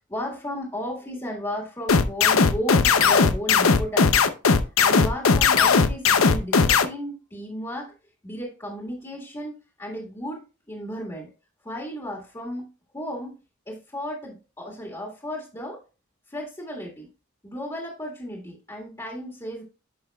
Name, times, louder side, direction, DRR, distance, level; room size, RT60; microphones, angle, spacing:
voice 1, 0.1-4.2 4.8-7.9 8.2-10.4 10.7-11.3 11.6-12.7 12.9-13.3 13.7-15.8 16.3-17.1 17.4-19.6, equal, 20° left, -1 dB, 1.9 m, -34 dB
sound 1, 1.9-6.8, left 5 dB, 80° left, 0.7 m, -18 dB
10.5 x 5.6 x 2.3 m, 0.31 s
head